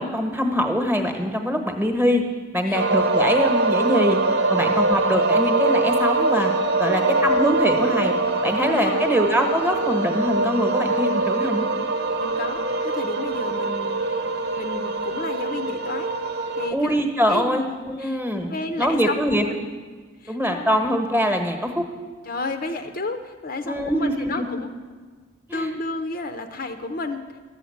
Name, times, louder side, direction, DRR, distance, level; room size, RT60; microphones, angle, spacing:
voice 1, 0.0-2.2 2.5-4.2 4.5-6.5 6.8-11.6 16.7-19.4 20.3-21.9 23.6-24.4 25.5-25.7, equal, 10° right, 4 dB, 1.1 m, -23 dB
sound 1, 2.7-16.7, right 2 dB, 55° right, 1.0 m, -23 dB
voice 2, 6.9-7.4 8.6-9.1 12.2-17.0 17.3-18.2 18.5-19.7 20.2-20.8 22.3-24.7 25.5-27.3, left 2 dB, 45° left, 7 dB, 0.6 m, -32 dB
12.5 x 7.1 x 8.5 m, 1.4 s
head